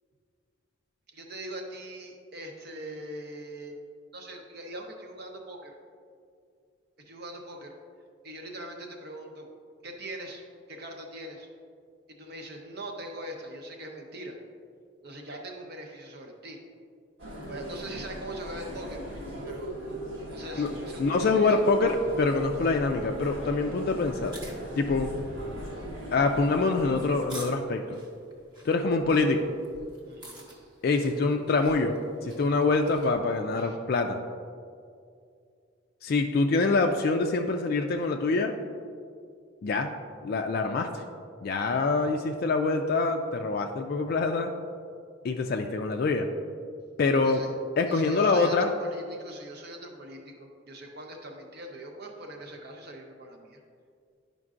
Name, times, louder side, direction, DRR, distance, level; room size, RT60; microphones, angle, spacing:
voice 1, 1.1-3.8 4.1-5.7 7.0-7.7 8.2-9.5 9.8-10.4 10.7-11.5 12.1-14.4 15.0-16.6 17.4-19.0 19.4-19.8 20.3-21.6 30.1-30.5 33.5-33.8 47.2-47.5 47.9-53.6, right 1 dB, 55° right, 2 dB, 0.8 m, -42 dB
sound 1, 17.2-27.3, equal, 80° right, 1.5 m, -39 dB
voice 2, 21.0-24.4 24.8-25.1 26.1-28.0 28.6-29.5 30.8-31.9 32.2-34.2 36.0-38.6 39.6-39.9 40.2-41.0 41.4-44.5 45.2-46.3 47.0-47.4 47.8-48.7, left 3 dB, 50° left, 4 dB, 0.3 m, -25 dB
sound 2, 24.1-33.2, right 1 dB, 25° right, 1.0 m, -49 dB
10.5 x 5.2 x 2.5 m, 2.3 s
head